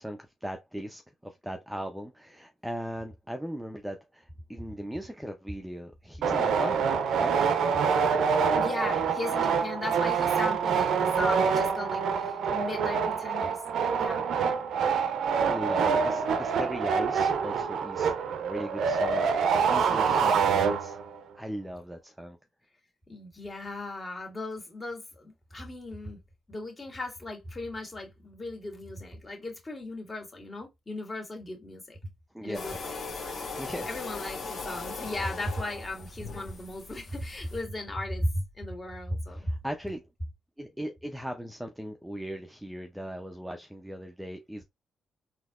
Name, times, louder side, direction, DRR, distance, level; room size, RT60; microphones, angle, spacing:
voice 1, 0.0-7.4 15.4-21.0 21.3-22.4 32.3-32.8 33.6-33.9 39.3-40.0 40.6-44.6, equal, 5° right, 0.6 m, -38 dB
sound 1, 6.2-21.2, right 6 dB, 75° right, 0.5 m, -26 dB
voice 2, 8.5-13.6 14.0-14.3 23.1-26.2 26.5-32.0 32.4-33.4 33.9-39.5, left 1 dB, 30° left, 1.8 m, -36 dB
sound 2, 32.5-37.6, left 4 dB, 60° left, 1.3 m, -39 dB
3.9 x 2.8 x 2.4 m
cardioid pair, 80°, 0 cm